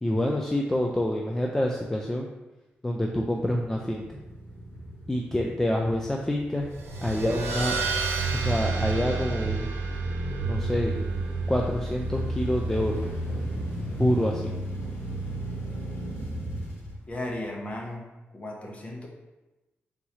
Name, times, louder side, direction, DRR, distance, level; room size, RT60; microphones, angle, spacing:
voice 1, 0.0-2.3 2.8-4.2 5.1-6.7 7.0-7.8 8.3-9.7 10.4-11.0 11.5-13.0 14.0-14.5, left 1 dB, 10° left, -1 dB, 0.3 m, -27 dB
sound 1, 3.5-17.7, equal, 70° left, 1.0 m, -35 dB
sound 2, 6.7-13.7, right 4 dB, 75° right, 0.7 m, -31 dB
voice 2, 17.1-18.1 18.3-19.1, left 1 dB, 30° left, 0 dB, 0.7 m, -35 dB
3.6 x 3.0 x 4.1 m, 1.1 s
wide cardioid pair, 145°, 4 cm